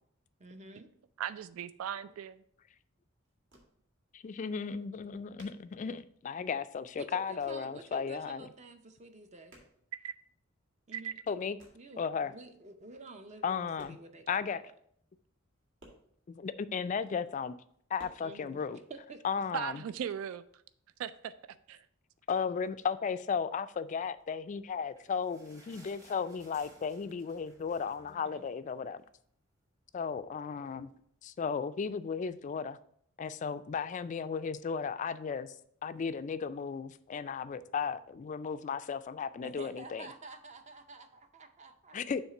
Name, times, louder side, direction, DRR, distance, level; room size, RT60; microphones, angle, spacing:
voice 1, 0.4-0.9 7.0-9.5 10.9-11.2 11.7-14.7 18.2-19.2 28.0-28.5 39.4-42.0, right 3 dB, 35° right, 0.6 m, -50 dB
voice 2, 1.2-2.4 9.9-10.1 10.9-11.1 19.5-20.4 21.0-21.8, right 9 dB, 90° right, 0.3 m, -38 dB
sound 1, 3.2-4.1 4.4-4.5 4.7-6.5 6.8-7.8 8.0-8.6 8.9-10.6 10.9-12.0 12.8-12.9 13.4-14.3 14.6-14.7 14.9-15.0 15.3-16.8 17.2-18.1, right 1 dB, 65° right, 1.9 m, -61 dB
voice 3, 4.1-8.5 11.3-11.6 12.0-12.3 13.4-14.0 14.3-14.6 16.3-17.5 17.9-18.8 19.2-19.8 22.3-29.0 29.9-30.9 31.2-32.8 33.2-35.6 35.8-40.1 41.9-42.2, left 6 dB, 35° left, 0.3 m, -35 dB
sound 2, 24.5-29.3 29.6-29.7 30.0-30.2 30.8-30.9, right 1 dB, 15° right, 1.0 m, -61 dB
7.1 x 3.2 x 5.8 m
head